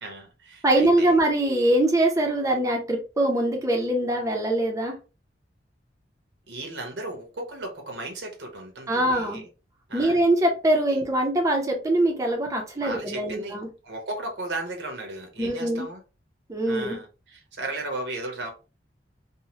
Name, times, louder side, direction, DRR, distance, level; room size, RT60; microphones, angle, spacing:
voice 1, 0.0-1.2 6.5-9.4 9.9-10.2 10.9-11.0 12.7-13.6 13.8-16.0 16.7-18.5, right 2 dB, 85° right, 0.9 m, -35 dB
voice 2, 0.6-5.0 8.9-9.4 9.9-13.7 15.4-15.9 16.5-17.0, right 1 dB, 20° right, 0.5 m, -23 dB
2.7 x 2.0 x 2.9 m
head